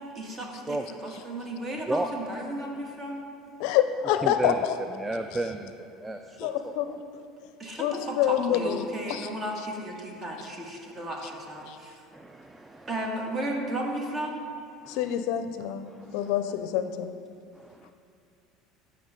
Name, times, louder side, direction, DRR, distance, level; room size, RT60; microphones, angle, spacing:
voice 1, 0.1-3.3 7.6-12.0 12.9-14.4 16.5-16.6, right 1 dB, 35° right, 0 dB, 1.7 m, -34 dB
voice 2, 0.7-1.2 1.9-2.1 4.2-7.0 10.9-11.1 12.1-12.9 14.8-15.2 15.9-16.3 17.6-17.9, right 2 dB, 15° right, 6 dB, 0.4 m, -34 dB
voice 3, 3.6-4.7 6.4-6.9 7.8-8.8 9.1-9.3 11.7-11.8 14.9-15.9 16.1-17.1, left 10 dB, 70° left, 9 dB, 0.5 m, -26 dB
12.5 x 5.8 x 3.7 m, 2.4 s
supercardioid pair, 95°, 0 cm